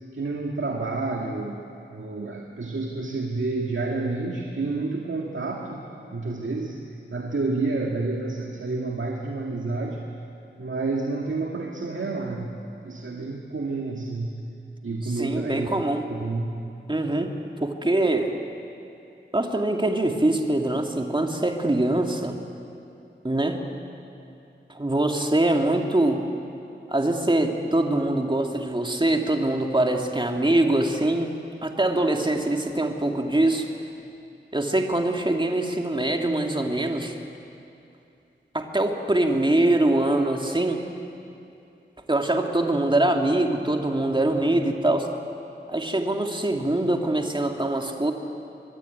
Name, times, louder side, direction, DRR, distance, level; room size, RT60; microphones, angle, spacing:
voice 1, 0.1-5.9 6.1-6.8 7.1-10.0 10.6-14.4 14.8-15.7 16.1-16.6, right 3 dB, 75° right, 0 dB, 2.0 m, -29 dB
voice 2, 15.2-16.0 16.9-17.3 17.6-18.3 19.3-22.4 23.2-23.6 24.7-26.2 26.9-31.3 31.6-33.7 34.5-37.2 38.5-40.8 42.1-45.1 45.7-48.1, right 1 dB, 25° right, 3 dB, 2.4 m, -23 dB
24.5 x 22.0 x 9.5 m, 2.7 s
wide cardioid pair, 80°, 20 cm